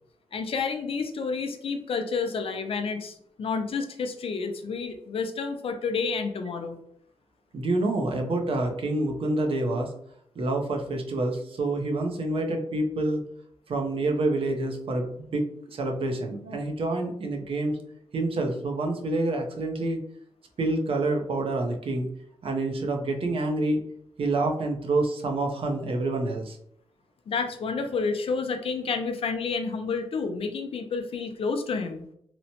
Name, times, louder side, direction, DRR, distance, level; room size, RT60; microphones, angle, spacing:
voice 1, 0.3-6.8 27.3-32.0, left 4 dB, 65° left, 6 dB, 0.4 m, -30 dB
voice 2, 7.5-9.9 10.4-13.2 13.7-17.8 18.1-20.0 20.6-22.1 22.4-23.8 24.2-26.6, right 2 dB, 65° right, 3 dB, 0.5 m, -27 dB
2.9 x 2.1 x 2.7 m, 0.70 s
cardioid pair, 75°, 10 cm